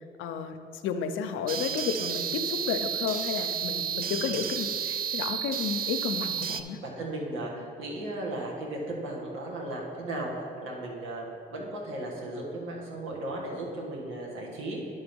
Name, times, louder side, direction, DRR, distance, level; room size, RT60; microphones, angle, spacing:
voice 1, 0.2-0.6 0.8-6.8, left 7 dB, 90° left, 8 dB, 0.6 m, -32 dB
sound 1, 1.5-6.6, right 8 dB, 50° right, 0.4 m, -32 dB
voice 2, 6.8-11.3 11.5-14.8, right 1 dB, 85° right, -2 dB, 1.7 m, -36 dB
11.0 x 3.9 x 5.3 m, 2.5 s
cardioid pair, 90°, 20 cm